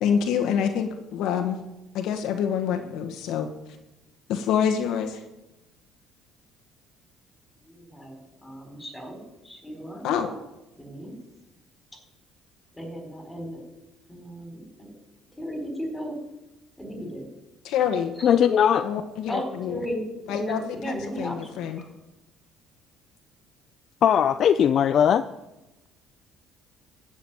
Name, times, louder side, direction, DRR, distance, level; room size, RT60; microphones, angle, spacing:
voice 1, 0.0-1.6 1.9-3.5 4.3-5.2 10.0-10.3 17.6-18.2 18.8-19.8 20.3-21.8, left 8 dB, 70° left, 6 dB, 1.3 m, -26 dB
voice 2, 7.6-10.0 10.8-11.1 12.7-13.6 14.1-14.7 15.4-16.2 16.8-17.3 18.2-18.3 19.3-21.9, equal, 10° left, 3 dB, 4.4 m, -35 dB
voice 3, 18.2-18.9 24.0-25.2, left 9 dB, 50° left, 10 dB, 0.5 m, -19 dB
13.5 x 6.3 x 9.1 m, 0.99 s
cardioid pair, 100°, 0 cm